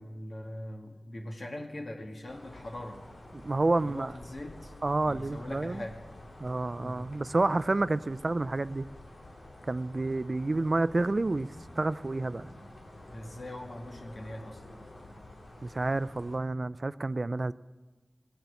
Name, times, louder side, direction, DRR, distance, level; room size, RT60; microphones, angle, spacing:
voice 1, 0.0-3.0 3.8-4.7 5.1-6.0 6.8-7.1 13.1-14.6, left 1 dB, 60° left, 2 dB, 2.1 m, -41 dB
sound 1, 2.3-16.4, left 1 dB, 80° left, 2.5 m, -49 dB
voice 2, 3.3-4.1 4.8-5.8 6.4-8.9 9.7-11.5 11.8-12.5 15.6-17.5, right 2 dB, 50° right, 17 dB, 0.3 m, -29 dB
17.0 x 8.9 x 7.0 m, 1.2 s
wide cardioid pair, 75°, 0 cm